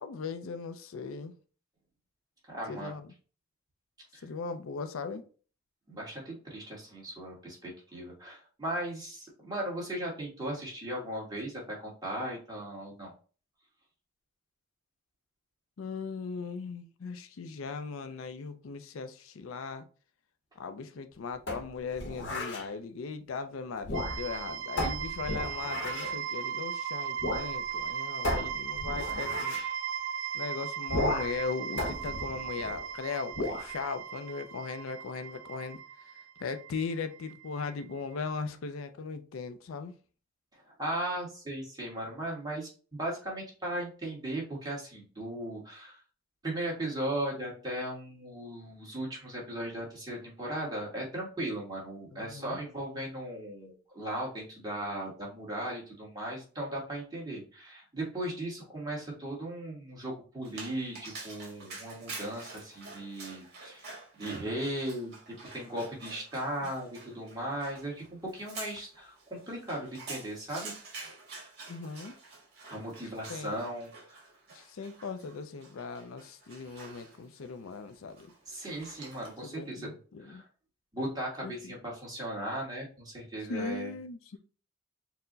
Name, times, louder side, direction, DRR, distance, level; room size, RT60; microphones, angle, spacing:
voice 1, 0.0-1.3 2.7-3.1 4.2-5.2 15.8-19.9 20.6-29.6 30.3-36.1 36.4-40.0 52.1-52.6 66.6-66.7 71.7-72.1 73.3-73.6 74.5-78.3 79.4-80.4 81.4-81.7 83.5-84.4, left 4 dB, 80° left, 0.4 m, -38 dB
voice 2, 2.5-2.9 4.1-4.2 5.9-13.1 40.8-46.0 46.4-65.1 65.5-70.7 72.7-74.2 78.5-79.9 80.2-80.4 80.9-83.9, right 1 dB, 20° right, 1.4 m, -37 dB
sound 1, 21.5-22.7 23.8-24.4 24.8-26.2 27.2-27.5 27.8-27.9 28.2-29.7 30.9-31.4 31.8-32.9 33.3-33.7, left 1 dB, 60° left, 0.8 m, -34 dB
sound 2, 23.9-37.8, right 8 dB, 75° right, 0.4 m, -37 dB
Dog, 60.4-79.5, right 3 dB, 50° right, 1.5 m, -48 dB
4.4 x 2.1 x 3.9 m
head